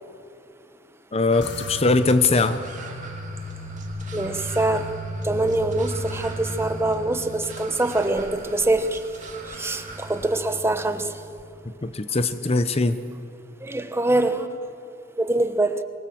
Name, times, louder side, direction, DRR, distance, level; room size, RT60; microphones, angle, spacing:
voice 1, 1.1-2.6 11.8-13.0, left 3 dB, 30° left, 0.7 m, -21 dB
sound 1, 1.3-10.5, right 3 dB, 40° right, 2.8 m, -42 dB
sound 2, 1.4-12.0, equal, 60° left, 1.8 m, -36 dB
voice 2, 4.1-4.9 5.2-9.0 9.5-11.2 13.6-14.6 15.2-15.8, right 2 dB, 15° right, 1.1 m, -24 dB
26.0 x 22.0 x 7.8 m
head